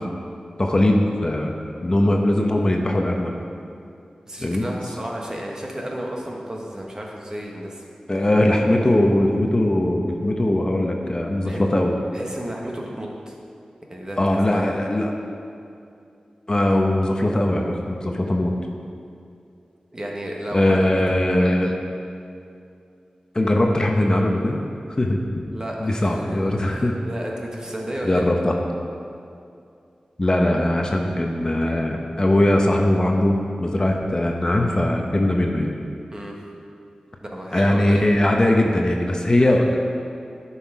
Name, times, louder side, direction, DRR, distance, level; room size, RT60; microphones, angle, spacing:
voice 1, 0.6-1.5 1.8-3.3 4.4-4.7 8.1-11.9 14.2-15.1 16.5-18.5 20.5-21.7 23.3-24.6 25.0-25.2 25.8-26.9 28.0-28.6 30.2-35.7 37.5-39.7, left 1 dB, 35° left, 1 dB, 0.8 m, -20 dB
voice 2, 4.3-7.8 8.1-8.2 11.4-11.6 12.1-13.3 13.9-14.7 19.9-20.8 21.4-21.5 25.5-28.2 36.1-36.4 37.2-38.0, right 1 dB, 30° right, -1 dB, 1.4 m, -33 dB
10.5 x 5.7 x 4.7 m, 2.5 s
wide cardioid pair, 60°, 2 cm